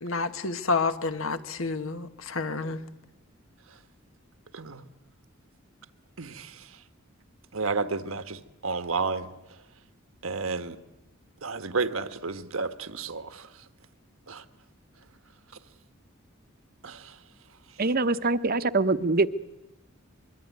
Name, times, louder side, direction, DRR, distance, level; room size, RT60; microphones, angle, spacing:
voice 1, 0.0-2.8, left 4 dB, 75° left, 10 dB, 1.5 m, -29 dB
voice 2, 6.2-6.7 7.5-9.3 10.2-10.8 11.4-13.5 14.3-14.4 16.8-17.1, right 4 dB, 80° right, 10 dB, 1.4 m, -31 dB
voice 3, 17.8-19.3, right 3 dB, 45° right, 13 dB, 0.9 m, -24 dB
25.0 x 22.5 x 9.5 m, 0.97 s
head